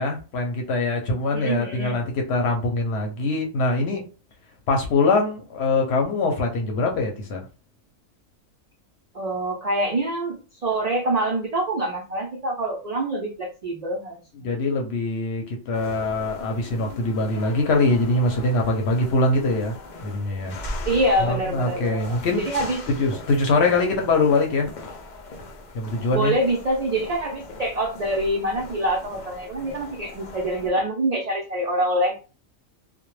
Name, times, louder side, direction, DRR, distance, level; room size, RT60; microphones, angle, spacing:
voice 1, 0.0-4.0 4.7-7.4 14.4-19.7 20.0-20.6 21.2-22.4 23.0-24.7 25.7-26.3, left 2 dB, 60° left, 0.8 m, -23 dB
voice 2, 1.3-2.0 9.1-10.4 10.6-14.2 14.4-14.5 20.8-22.8 23.8-23.9 26.1-32.2, right 1 dB, 75° right, 0.3 m, -25 dB
sound 1, 15.7-30.7, left 2 dB, 90° left, 0.4 m, -39 dB
2.2 x 2.1 x 3.0 m
omnidirectional pair, 1.4 m